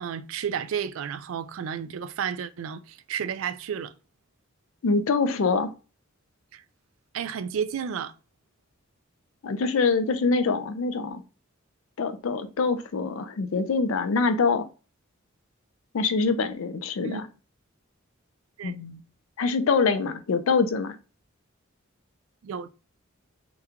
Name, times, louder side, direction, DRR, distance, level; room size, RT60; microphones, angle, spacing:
voice 1, 0.0-3.9 6.5-6.6 7.1-8.1 17.0-17.2 18.6-18.8 22.4-22.7, right 8 dB, 70° right, 0.3 m, -32 dB
voice 2, 4.8-5.7 9.4-11.2 12.0-14.7 15.9-17.3 18.6-19.0 19.4-21.0, left 4 dB, 70° left, 0.4 m, -24 dB
2.9 x 2.2 x 3.6 m
head